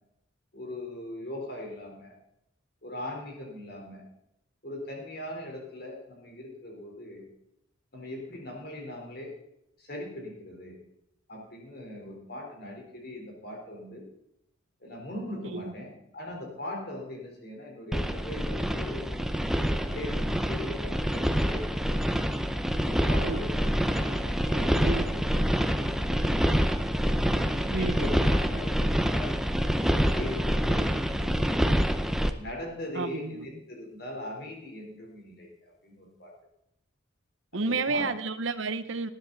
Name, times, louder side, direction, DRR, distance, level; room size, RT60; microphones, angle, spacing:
voice 1, 0.5-2.2 2.8-4.0 4.6-7.3 7.9-9.3 9.8-10.7 11.3-14.1 14.8-19.2 19.6-21.8 22.8-26.6 27.3-29.4 30.0-31.3 32.4-36.3 37.5-38.1, left 1 dB, 50° left, 0 dB, 3.9 m, -40 dB
sound 1, 17.9-32.3, equal, ahead, 0.5 m, -26 dB
voice 2, 32.9-33.5 37.5-39.1, right 3 dB, 75° right, 12 dB, 0.9 m, -31 dB
18.5 x 10.0 x 4.0 m, 0.82 s
head